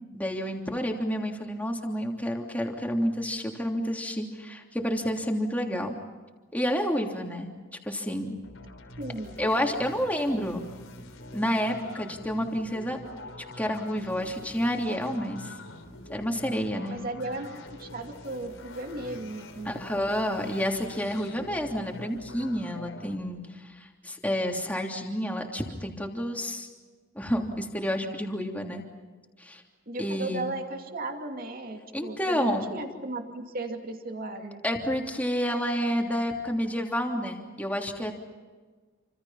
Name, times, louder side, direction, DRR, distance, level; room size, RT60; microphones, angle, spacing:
voice 1, 0.1-5.9 6.5-7.5 7.8-8.4 9.4-10.6 11.3-13.0 13.6-15.5 16.1-17.0 19.6-26.7 27.1-28.8 29.4-29.6 30.0-30.5 31.9-32.7 34.6-38.1, equal, 10° left, 1 dB, 3.1 m, -29 dB
sound 1, 8.4-23.2, left 2 dB, 90° left, 3.7 m, -45 dB
voice 2, 9.0-9.4 16.9-19.8 29.9-34.6, right 2 dB, 45° right, 4 dB, 2.6 m, -36 dB
29.0 x 26.5 x 5.8 m, 1.4 s
head